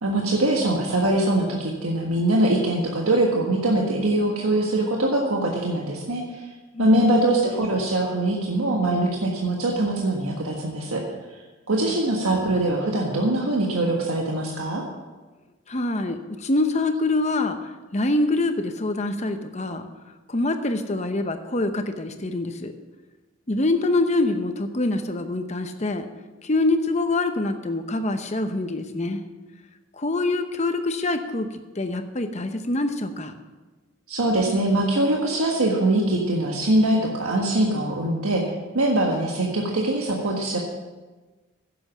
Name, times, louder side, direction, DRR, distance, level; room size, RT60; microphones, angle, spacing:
voice 1, 0.0-6.2 6.8-11.0 11.7-14.8 34.1-38.4 38.7-40.6, right 1 dB, 85° right, -1 dB, 1.5 m, -22 dB
voice 2, 6.7-7.1 15.7-17.6 17.9-19.9 20.3-22.7 23.5-26.1 26.4-29.2 30.0-31.5 31.8-33.3, left 2 dB, 30° left, 8 dB, 0.8 m, -25 dB
10.5 x 7.8 x 7.4 m, 1.2 s
head